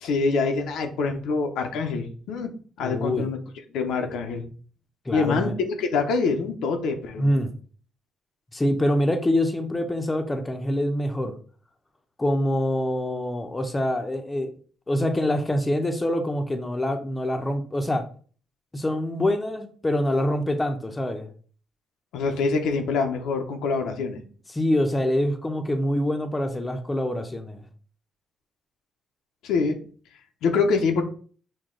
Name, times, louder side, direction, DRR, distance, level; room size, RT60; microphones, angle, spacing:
voice 1, 0.0-2.5 2.8-3.4 3.7-4.4 5.1-7.3 22.1-24.2 29.4-29.8 30.4-31.0, left 4 dB, 85° left, 4 dB, 0.7 m, -25 dB
voice 2, 2.8-3.3 5.1-5.5 7.2-7.5 8.5-11.4 12.2-14.5 14.9-18.0 18.7-21.3 24.5-27.6, left 1 dB, 20° left, 5 dB, 0.7 m, -25 dB
6.2 x 2.3 x 3.7 m, 0.43 s
cardioid pair, 90°, 0 cm